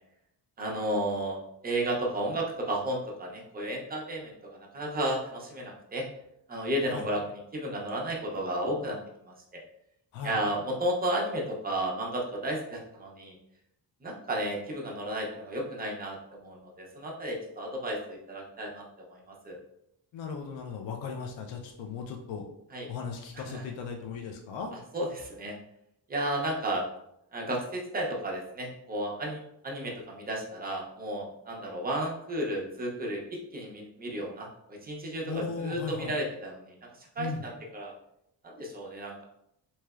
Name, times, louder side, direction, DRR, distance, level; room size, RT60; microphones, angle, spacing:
voice 1, 0.6-6.1 6.5-9.0 9.3-9.4 10.2-13.3 14.0-19.6 22.7-22.9 23.4-23.7 24.9-25.6 26.1-26.9 27.3-33.2 33.5-37.9 38.4-39.2, right 1 dB, 20° right, -2 dB, 0.5 m, -33 dB
voice 2, 20.1-22.4 22.9-24.7 35.3-36.1 37.2-37.4, left 6 dB, 80° left, 2 dB, 0.5 m, -37 dB
3.1 x 2.8 x 2.3 m, 0.77 s
wide cardioid pair, 175°, 45 cm